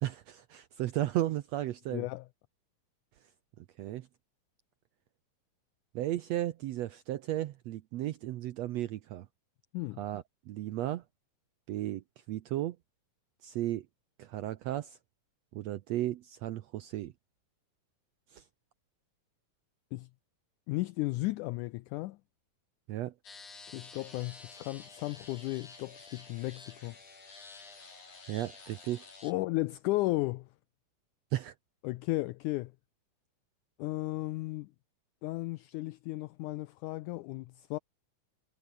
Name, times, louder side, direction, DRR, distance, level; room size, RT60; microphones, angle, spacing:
voice 1, 0.0-2.0 3.6-4.1 5.9-9.3 10.0-11.0 11.7-12.8 13.4-13.9 14.2-15.0 15.5-17.1 18.3-18.4 22.9-23.1 28.3-29.1 31.3-31.5, right 14 dB, 85° right, 1.5 m, -35 dB
voice 2, 1.9-2.3 9.7-10.0 19.9-20.1 20.7-22.2 23.7-27.0 29.2-30.5 31.8-32.7 33.8-34.7 35.2-37.8, left 19 dB, 80° left, 1.8 m, -34 dB
sound 1, 23.2-29.3, left 4 dB, 60° left, 8.2 m, -51 dB
omnidirectional pair, 4.0 m